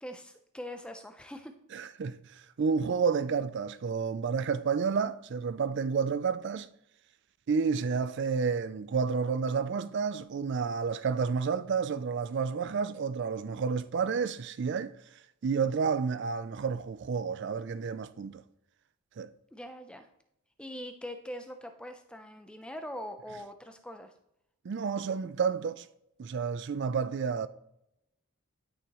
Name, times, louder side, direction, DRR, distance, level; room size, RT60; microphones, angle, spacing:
voice 1, 0.0-1.5 19.5-20.1 20.6-24.1, equal, 5° left, 0.6 m, -42 dB
voice 2, 1.7-6.7 7.5-18.4 19.2-19.3 24.6-25.9 26.2-27.5, right 5 dB, 50° right, 0.3 m, -30 dB
11.5 x 6.4 x 3.0 m
head